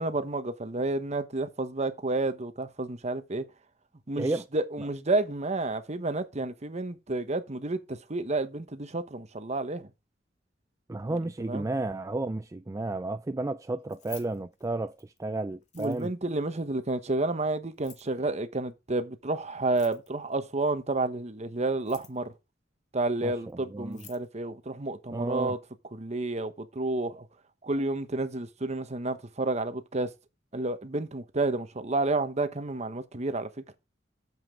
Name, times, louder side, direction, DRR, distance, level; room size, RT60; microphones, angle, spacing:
voice 1, 0.0-3.4 4.1-4.3 4.5-9.9 11.5-11.7 15.8-22.3 22.9-25.6 25.9-27.2 27.6-30.1 30.5-33.5, right 2 dB, 35° right, 1.1 m, -30 dB
voice 2, 10.9-16.1 23.2-24.1 25.1-25.6, right 2 dB, 15° right, 0.4 m, -32 dB
Keys jangling, 13.8-15.2 15.6-16.3 17.7-18.2 19.6-20.3 21.7-22.3 23.5-23.6 23.8-24.3, left 7 dB, 40° left, 2.0 m, -51 dB
9.1 x 7.4 x 3.7 m
head